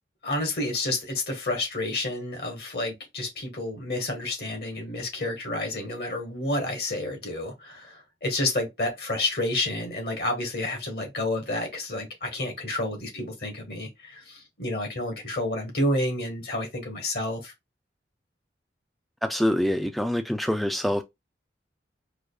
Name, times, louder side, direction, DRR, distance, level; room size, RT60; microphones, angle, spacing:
voice 1, 0.2-17.5, left 1 dB, 60° left, 1.3 m, -30 dB
voice 2, 19.2-21.0, equal, ahead, 0.4 m, -25 dB
4.8 x 2.5 x 2.3 m
head